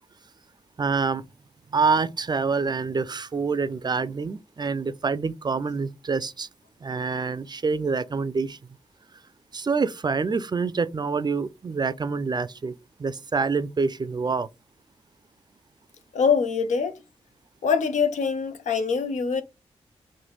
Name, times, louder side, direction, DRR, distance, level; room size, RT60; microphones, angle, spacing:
voice 1, 0.8-1.2 1.7-6.5 6.8-8.5 9.5-12.7 13.0-14.5, right 4 dB, 35° right, 0.4 m, -26 dB
voice 2, 16.1-16.9 17.6-19.4, left 6 dB, 80° left, 0.5 m, -23 dB
3.2 x 2.1 x 3.0 m
supercardioid pair, 40°, 12 cm